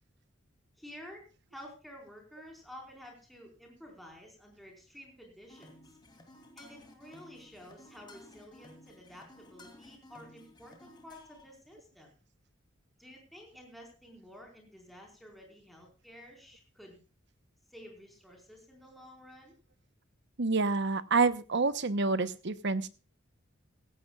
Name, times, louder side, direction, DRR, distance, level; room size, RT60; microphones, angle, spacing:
voice 1, 0.8-1.3 1.5-6.0 6.6-12.1 13.0-17.0 17.7-19.5, equal, ahead, 1 dB, 4.6 m, -51 dB
sound 1, 5.5-11.5, left 1 dB, 20° left, 2.9 m, -55 dB
voice 2, 20.4-22.9, right 3 dB, 60° right, 13 dB, 1.0 m, -28 dB
16.5 x 16.0 x 2.4 m, 0.33 s
head